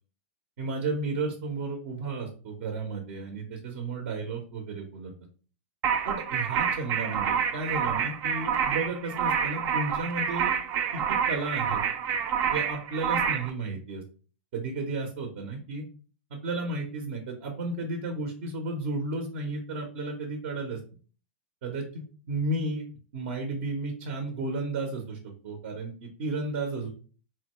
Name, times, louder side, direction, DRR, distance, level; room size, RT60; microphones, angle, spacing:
voice 1, 0.6-5.1 6.1-10.5 10.9-11.8 12.5-14.0 14.5-15.8 16.3-20.8 21.6-22.8 23.1-26.9, right 3 dB, 65° right, 2 dB, 0.8 m, -33 dB
sound 1, 5.8-13.5, right 7 dB, 35° right, 0.5 m, -28 dB
4.0 x 2.2 x 3.0 m, 0.39 s
hypercardioid pair, 110°, 7 cm